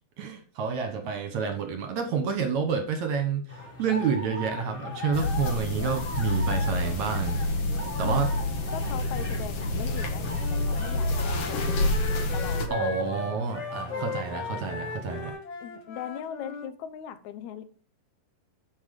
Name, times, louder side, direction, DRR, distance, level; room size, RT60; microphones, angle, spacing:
voice 1, 0.2-3.4 3.8-7.4 8.0-8.3 12.7-15.4, right 6 dB, 65° right, 6 dB, 2.2 m, -29 dB
sound 1, 3.5-15.3, left 1 dB, 20° left, 3.3 m, -40 dB
sound 2, 5.1-12.7, left 2 dB, 50° left, 2.2 m, -28 dB
voice 2, 8.7-13.4 13.9-14.2 15.6-17.6, left 9 dB, 65° left, 11 dB, 2.1 m, -40 dB
Wind instrument woodwind instrument, 10.4-16.7, left 2 dB, 90° left, 4.1 m, -37 dB
9.8 x 7.8 x 5.2 m, 0.38 s
omnidirectional pair, 4.1 m